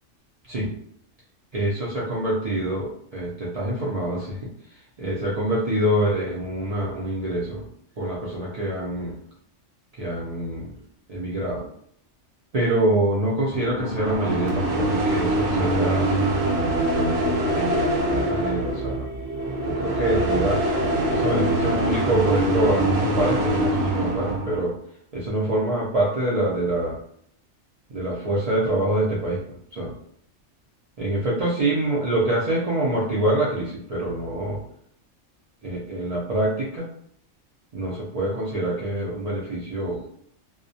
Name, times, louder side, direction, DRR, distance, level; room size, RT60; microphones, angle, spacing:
voice 1, 1.5-4.5 5.0-7.6 8.0-9.2 10.0-10.7 11.1-11.7 12.5-16.1 16.9-19.1 19.6-20.7 21.1-24.8 25.1-27.0 27.9-29.9 31.0-34.6 35.6-36.9 37.7-40.0, right 1 dB, 85° right, -6 dB, 0.3 m, -25 dB
sound 1, 13.5-24.6, right 1 dB, 55° right, 0.7 m, -24 dB
2.2 x 2.1 x 2.6 m, 0.66 s
omnidirectional pair, 1.3 m